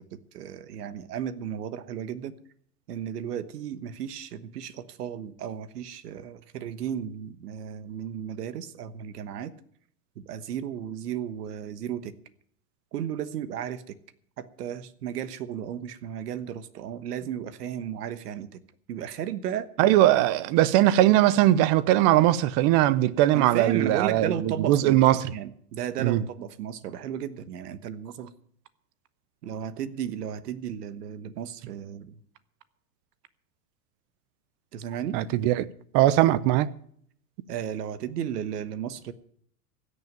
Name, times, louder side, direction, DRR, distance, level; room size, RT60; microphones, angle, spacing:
voice 1, 0.1-2.3 2.9-9.5 10.2-12.1 12.9-14.0 14.4-18.6 18.9-19.7 23.3-25.0 25.3-28.3 29.4-32.2 34.7-35.2 37.5-39.1, right 9 dB, 80° right, 1.3 m, -34 dB
voice 2, 19.8-25.3 26.0-26.2 35.1-35.7 35.9-36.7, right 14 dB, 40° right, 0.9 m, -20 dB
16.5 x 6.8 x 9.0 m
hypercardioid pair, 130°, 47 cm